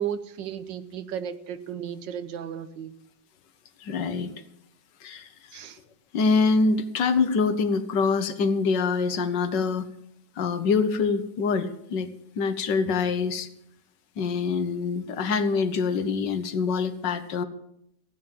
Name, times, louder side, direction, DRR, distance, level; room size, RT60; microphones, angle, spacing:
voice 1, 0.0-2.9 5.5-5.8, right 9 dB, 75° right, 12 dB, 1.6 m, -34 dB
voice 2, 3.8-4.3 5.0-5.6 6.1-9.9 10.4-12.1 12.4-13.5 14.2-17.4, left 4 dB, 75° left, 11 dB, 1.7 m, -25 dB
16.0 x 9.2 x 7.3 m, 0.76 s
omnidirectional pair, 2.0 m